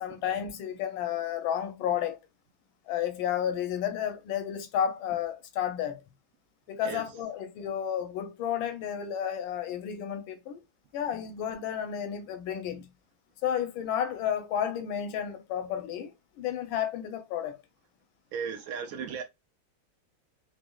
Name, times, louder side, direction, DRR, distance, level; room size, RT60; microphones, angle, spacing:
voice 1, 0.0-2.2 2.9-6.0 6.7-10.6 10.9-12.9 13.4-16.1 16.4-17.6, left 9 dB, 85° left, 1.5 m, -32 dB
voice 2, 18.3-19.2, right 6 dB, 85° right, 0.7 m, -35 dB
5.0 x 2.0 x 2.2 m
omnidirectional pair, 2.1 m